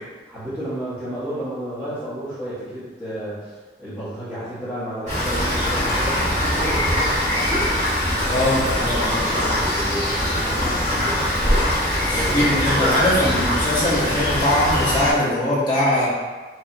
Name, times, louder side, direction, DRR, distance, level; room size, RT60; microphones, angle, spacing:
voice 1, 0.3-9.2 9.5-11.7 12.0-13.5, equal, 5° left, -17 dB, 1.3 m, -32 dB
Rain, 5.1-15.1, equal, 40° right, 1.1 m, -22 dB
voice 2, 8.2-9.5 12.0-16.1, left 1 dB, 25° left, -8 dB, 1.1 m, -21 dB
4.7 x 2.7 x 2.7 m, 1.3 s
head